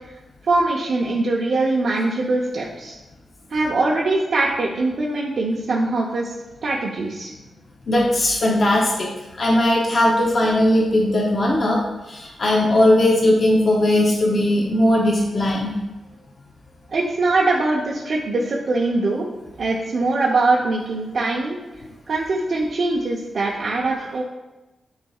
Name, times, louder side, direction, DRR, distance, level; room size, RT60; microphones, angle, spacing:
voice 1, 0.5-2.9 3.5-6.3 6.6-7.3 16.9-19.3 19.6-21.6 22.1-24.2, right 2 dB, 50° right, -4 dB, 0.7 m, -22 dB
voice 2, 7.9-9.1 9.4-11.8 12.1-15.7, left 1 dB, 35° left, -2 dB, 0.7 m, -18 dB
10.5 x 4.0 x 2.4 m, 1.1 s
wide cardioid pair, 175°, 0 cm